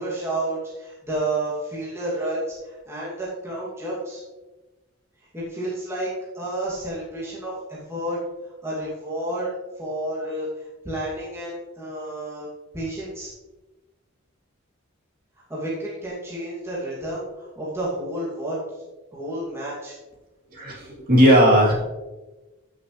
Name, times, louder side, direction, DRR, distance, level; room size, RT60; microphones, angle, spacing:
voice 1, 0.0-4.2 5.3-6.1 6.3-8.2 8.6-10.5 10.8-12.5 12.7-13.3 15.5-18.6 19.1-19.9, right 1 dB, 15° right, -8 dB, 2.6 m, -30 dB
voice 2, 20.5-21.7, equal, 40° right, -4 dB, 3.2 m, -16 dB
15.0 x 6.6 x 3.3 m, 1.1 s
head